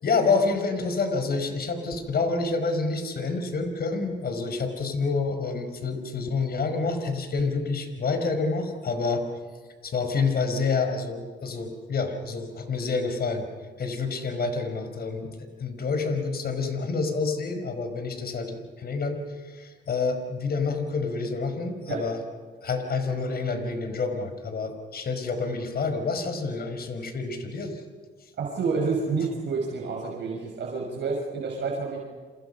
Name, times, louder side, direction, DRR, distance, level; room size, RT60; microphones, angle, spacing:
voice 1, 0.0-9.2 9.8-13.4 13.8-22.2 22.6-27.8, left 4 dB, 50° left, 6 dB, 5.3 m, -28 dB
voice 2, 28.4-32.0, right 4 dB, 65° right, -1 dB, 5.9 m, -29 dB
29.0 x 27.0 x 5.8 m, 1.5 s
cardioid pair, 90°, 20 cm